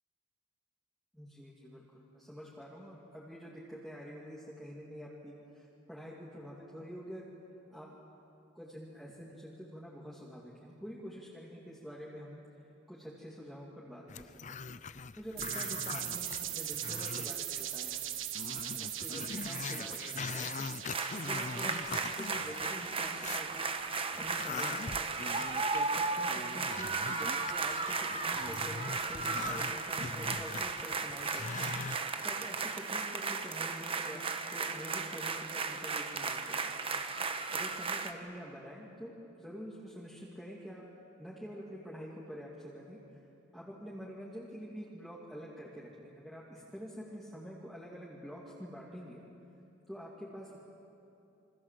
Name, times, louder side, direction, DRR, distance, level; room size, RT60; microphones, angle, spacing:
voice 1, 1.1-7.3 7.7-7.9 8.5-12.4 12.9-14.6 15.2-18.1 18.5-20.7 21.1-23.7 24.1-25.0 25.7-31.7 32.2-34.2 34.5-37.0 37.5-40.8 41.2-43.0 43.5-49.2 49.9-50.6, equal, ahead, -6 dB, 2.9 m, -47 dB
Growling, 14.1-17.6 18.0-18.1 18.4-23.5 23.9-32.0, left 5 dB, 40° left, 0.5 m, -42 dB
sound 1, 15.4-23.2, right 11 dB, 80° right, 1.6 m, -40 dB
sound 2, 20.9-38.1, right 4 dB, 30° right, 1.2 m, -35 dB
28.5 x 24.5 x 7.8 m, 2.9 s
head